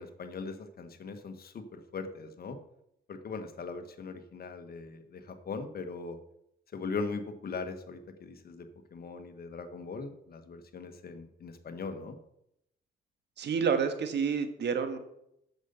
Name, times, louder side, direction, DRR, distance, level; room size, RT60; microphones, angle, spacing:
voice 1, 0.0-2.6 3.1-6.2 6.7-12.2, left 4 dB, 50° left, 8 dB, 1.5 m, -40 dB
voice 2, 13.4-15.0, right 6 dB, 60° right, 8 dB, 1.5 m, -29 dB
8.1 x 6.8 x 6.9 m, 0.78 s
cardioid pair, 90°, 20 cm